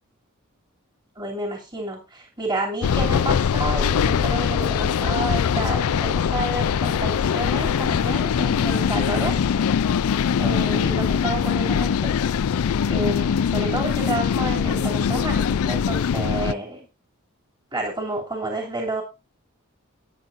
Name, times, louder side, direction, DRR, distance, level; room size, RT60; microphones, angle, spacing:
voice 1, 1.2-9.4 10.4-12.1 12.9-16.9 17.7-19.0, right 1 dB, 20° right, 0 dB, 2.9 m, -30 dB
sound 1, 2.8-16.5, left 7 dB, 85° left, 0.4 m, -22 dB
13.0 x 9.5 x 2.6 m, 0.27 s
head